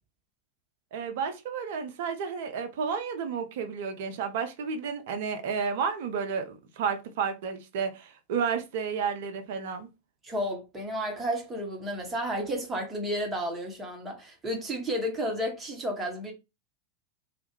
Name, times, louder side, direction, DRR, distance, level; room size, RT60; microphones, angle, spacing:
voice 1, 0.9-9.9, right 6 dB, 50° right, 0.5 m, -31 dB
voice 2, 10.2-16.3, equal, 15° right, 0.9 m, -32 dB
2.3 x 2.1 x 2.9 m
figure-of-eight pair, 90°, 0 cm